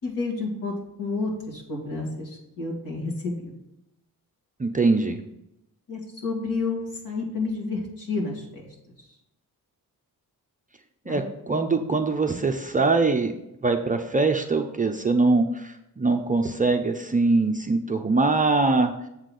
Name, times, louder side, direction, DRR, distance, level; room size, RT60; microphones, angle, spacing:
voice 1, 0.0-3.4 5.9-8.6 11.1-11.2, left 3 dB, 65° left, -1 dB, 2.4 m, -30 dB
voice 2, 4.6-5.2 11.1-13.3 13.6-18.9, right 3 dB, 20° right, 4 dB, 0.5 m, -22 dB
7.5 x 4.0 x 6.4 m, 0.85 s
wide cardioid pair, 165°, 36 cm